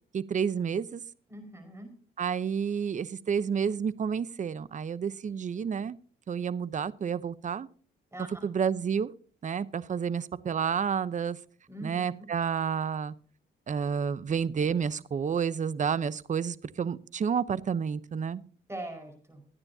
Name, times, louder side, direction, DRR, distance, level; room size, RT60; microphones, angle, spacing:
voice 1, 0.1-1.0 2.2-6.0 6.3-7.7 8.4-9.1 9.4-11.4 11.8-13.1 13.7-18.4, right 7 dB, 40° right, 17 dB, 0.8 m, -30 dB
voice 2, 1.3-1.9 8.1-8.5 11.7-12.1 18.7-19.4, right 1 dB, 15° right, 5 dB, 5.1 m, -42 dB
23.0 x 9.7 x 2.8 m, 0.43 s
cardioid pair, 90°, 20 cm